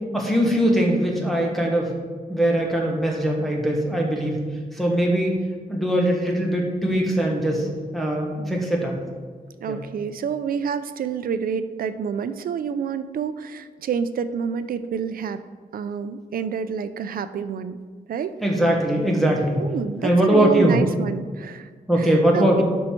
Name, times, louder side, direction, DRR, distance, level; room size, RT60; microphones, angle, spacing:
voice 1, 0.1-1.9 2.3-4.4 4.7-5.4 5.7-8.9 9.7-9.8 18.4-19.6 20.0-20.8 21.9-22.6, right 1 dB, ahead, -2 dB, 1.4 m, -21 dB
voice 2, 9.6-15.4 15.7-17.8 18.1-18.3 19.6-21.7 22.0-22.6, right 7 dB, 75° right, 12 dB, 0.5 m, -28 dB
12.0 x 5.5 x 4.5 m, 1.5 s
wide cardioid pair, 175°, 15 cm